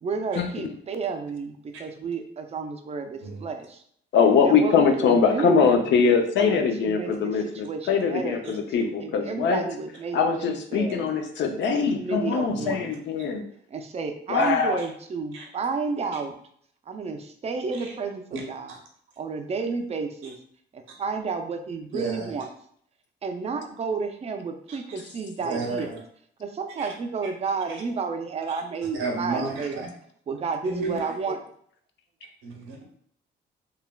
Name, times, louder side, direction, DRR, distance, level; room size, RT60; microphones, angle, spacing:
voice 1, 0.0-3.8 4.4-5.8 6.4-7.3 7.6-11.1 11.9-12.8 13.7-16.3 16.9-18.8 19.2-20.4 20.7-22.5 23.2-26.0 26.4-29.9 30.3-31.4, right 4 dB, 30° right, 6 dB, 0.4 m, -31 dB
voice 2, 4.1-9.6 10.1-13.4 14.3-14.8, left 5 dB, 65° left, 5 dB, 0.5 m, -22 dB
voice 3, 12.5-12.9 15.3-15.4 17.8-17.9 18.3-18.4 21.9-22.3 24.7-24.8 25.4-26.0 26.8-26.9 28.5-28.6 29.0-29.7 30.6-31.0 32.4-32.8, right 3 dB, 90° right, 0 dB, 0.8 m, -32 dB
3.2 x 2.3 x 2.2 m, 0.64 s
cardioid pair, 90°, 20 cm